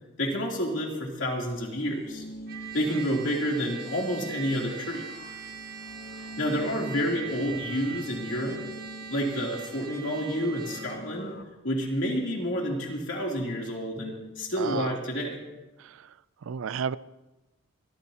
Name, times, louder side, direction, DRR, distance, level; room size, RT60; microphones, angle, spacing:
voice 1, 0.2-2.2 2.7-5.0 6.4-8.6 9.1-11.3 11.6-15.4, equal, 65° left, 3.1 m, -29 dB
sound 1, 1.4-11.4, equal, 45° left, 1.1 m, -44 dB
Trumpet, 2.5-11.0, right 8 dB, 50° right, 1.5 m, -42 dB
voice 2, 14.6-14.9 16.5-17.0, right 6 dB, 75° right, 0.4 m, -31 dB
25.5 x 13.5 x 2.9 m
head